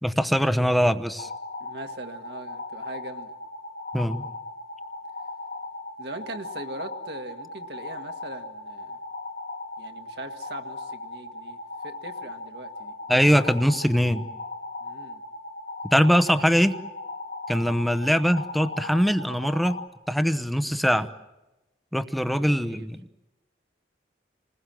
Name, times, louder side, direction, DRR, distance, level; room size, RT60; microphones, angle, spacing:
voice 1, 0.0-1.3 3.9-4.2 13.1-14.2 15.9-16.7 17.5-19.8 20.1-21.1 21.9-23.0, equal, ahead, 11 dB, 0.8 m, -22 dB
sound 1, 1.2-19.9, left 2 dB, 75° left, 1.9 m, -38 dB
voice 2, 1.6-3.3 6.0-9.0 9.8-12.9 14.8-15.2 17.8-18.0 22.2-22.9, right 2 dB, 65° right, 5 dB, 1.9 m, -41 dB
28.5 x 20.5 x 7.7 m, 1.0 s
head